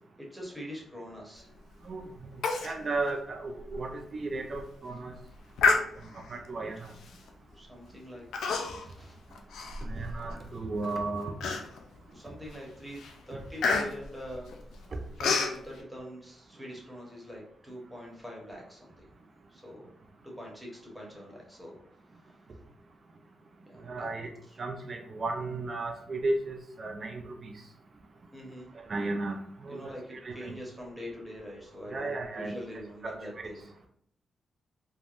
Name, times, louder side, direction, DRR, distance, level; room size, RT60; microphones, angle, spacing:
voice 1, 0.2-1.5 6.6-6.7 7.5-8.3 8.8-9.2 12.0-13.0 13.3-14.5 15.2-19.1 19.5-19.8 20.2-21.7 22.2-22.4 23.7-24.1 24.5-24.6 28.3-28.7 29.7-33.7, equal, 10° right, -2 dB, 1.1 m, -43 dB
Human voice, 2.4-2.8 3.1-3.2 3.7-3.8 4.4-4.6 5.6-6.3 7.1-7.3 8.3-8.9 9.3-10.3 10.8-10.9 11.4-12.0 12.5-12.7 13.0-15.6, left 4 dB, 85° left, 0.4 m, -29 dB
voice 2, 2.6-5.1 6.3-6.9 9.8-11.3 14.9-15.0 23.8-24.3 24.6-27.5 28.9-30.6 31.9-32.5 33.0-33.5, right 2 dB, 45° right, 4 dB, 0.4 m, -34 dB
3.4 x 2.1 x 2.5 m, 0.66 s
cardioid pair, 75°, 0 cm